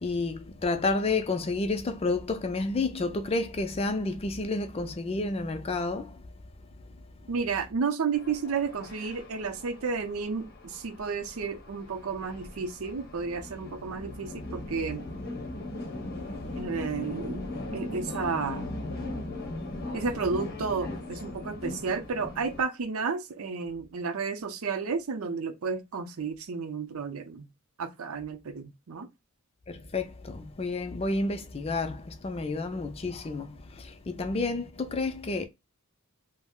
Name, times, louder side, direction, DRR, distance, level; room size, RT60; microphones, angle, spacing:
voice 1, 0.0-6.2 16.2-16.4 29.7-35.5, left 3 dB, 30° left, 0.4 m, -30 dB
voice 2, 7.3-15.0 16.6-17.4 17.7-18.7 19.9-27.5 27.8-29.1, right 5 dB, 75° right, 0.5 m, -32 dB
sound 1, 8.1-22.6, left 2 dB, 45° left, 0.8 m, -39 dB
2.4 x 2.0 x 3.5 m
head